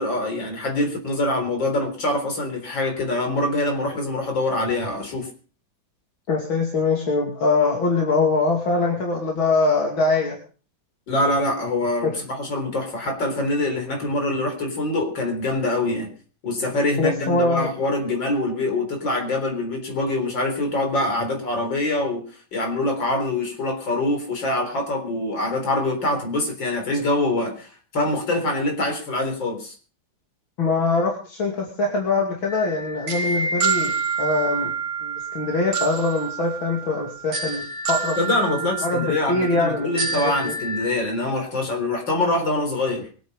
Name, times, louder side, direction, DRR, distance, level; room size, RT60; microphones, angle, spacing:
voice 1, 0.0-5.3 11.1-16.1 16.4-22.2 22.5-29.7 38.2-43.1, left 2 dB, 70° left, 4 dB, 4.7 m, -24 dB
voice 2, 6.3-10.4 12.0-12.1 17.0-17.7 30.6-34.7 35.0-38.2 38.8-40.5, left 3 dB, 85° left, 0 dB, 3.4 m, -23 dB
sound 1, 32.5-40.9, right 5 dB, 50° right, 1.8 m, -28 dB
23.0 x 8.7 x 5.6 m, 0.40 s
omnidirectional pair, 2.1 m